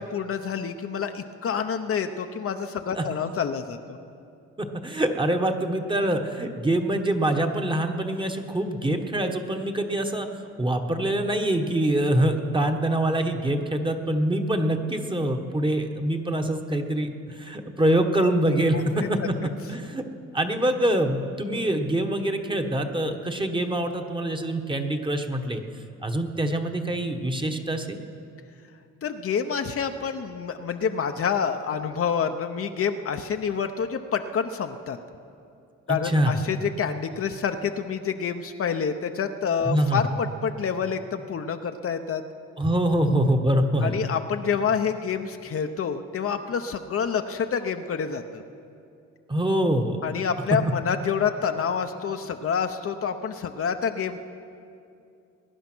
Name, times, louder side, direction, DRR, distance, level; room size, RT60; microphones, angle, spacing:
voice 1, 0.0-4.0 18.7-19.1 29.0-35.0 35.9-42.2 43.8-48.4 50.0-54.2, left 7 dB, 50° left, 7 dB, 0.8 m, -28 dB
voice 2, 4.6-19.3 19.7-20.0 20.3-25.6 26.0-28.0 35.9-36.3 39.6-40.0 42.6-44.0 49.3-50.0, right 1 dB, 15° right, 4 dB, 1.2 m, -25 dB
20.5 x 10.0 x 6.1 m, 2.5 s
cardioid pair, 90°, 30 cm